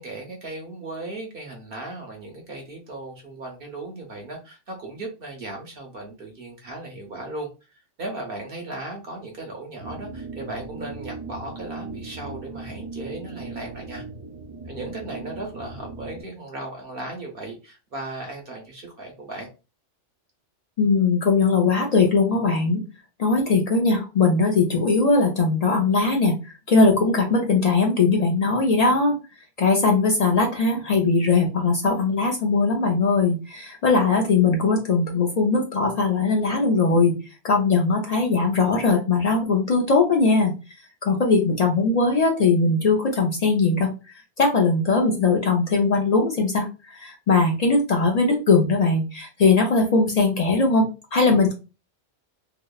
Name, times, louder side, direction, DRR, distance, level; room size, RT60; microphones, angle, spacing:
voice 1, 0.0-14.0 14.6-19.5, right 2 dB, 60° right, 2 dB, 0.7 m, -36 dB
sound 1, 9.8-16.2, right 3 dB, 75° right, 1.1 m, -38 dB
voice 2, 20.8-22.8 23.2-29.2 29.6-37.1 37.4-40.5 41.0-43.9 44.4-51.5, left 3 dB, 60° left, 0 dB, 0.4 m, -20 dB
2.8 x 2.0 x 2.2 m, 0.30 s
omnidirectional pair, 1.2 m